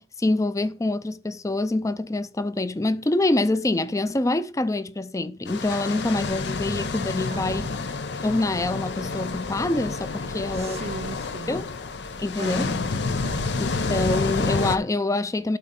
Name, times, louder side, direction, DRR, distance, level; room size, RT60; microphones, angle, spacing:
voice 1, 0.0-7.7 8.2-10.8 11.5-11.6 12.2-12.7 13.6-15.6, left 2 dB, 20° left, 0.5 m, -25 dB
sound 1, 5.5-14.8, left 3 dB, 80° left, 0.7 m, -29 dB
voice 2, 7.3-7.8 10.5-11.7 12.4-12.9 13.2-13.8, right 3 dB, 35° right, 0.5 m, -38 dB
12.0 x 4.1 x 3.7 m
head